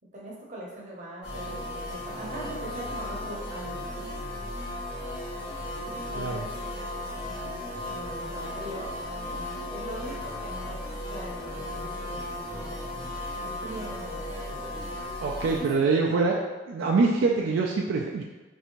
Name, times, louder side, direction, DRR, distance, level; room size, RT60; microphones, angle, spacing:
voice 1, 0.1-4.2 6.1-6.5 7.9-8.9 9.3-9.4 9.7-12.7 13.0-13.1 13.4-14.2 15.4-15.9, right 1 dB, 40° right, -4 dB, 0.7 m, -41 dB
sound 1, 1.2-15.6, left 1 dB, 65° left, 1.2 m, -35 dB
voice 2, 6.2-6.5 15.2-16.3 16.7-18.2, right 4 dB, 70° right, -1 dB, 0.3 m, -24 dB
3.2 x 2.6 x 2.9 m, 1.2 s
head